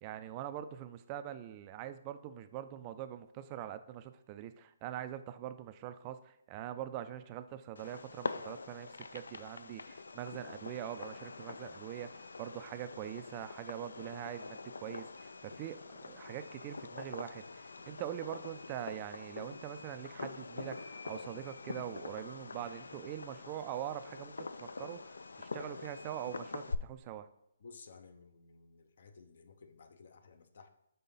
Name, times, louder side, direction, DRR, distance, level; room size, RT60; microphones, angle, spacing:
voice 1, 0.0-27.3, right 11 dB, 30° right, 0.3 m, -43 dB
Fireworks, 7.8-26.8, left 4 dB, 75° left, 0.3 m, -45 dB
voice 2, 27.6-30.7, left 4 dB, 60° left, 0.7 m, -56 dB
5.5 x 3.7 x 5.5 m
figure-of-eight pair, 145°, 0 cm